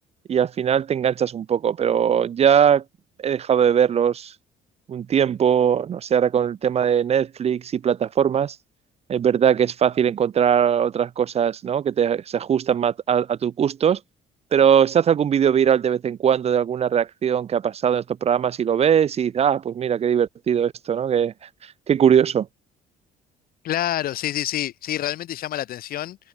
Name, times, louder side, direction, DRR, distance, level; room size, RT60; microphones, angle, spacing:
voice 1, 0.3-2.8 3.2-4.3 4.9-8.6 9.1-14.0 14.5-21.3 21.9-22.5, right 8 dB, 40° right, 0.6 m, -20 dB
voice 2, 23.6-26.2, left 12 dB, 60° left, 1.0 m, -27 dB
cardioid pair, 110°, 17 cm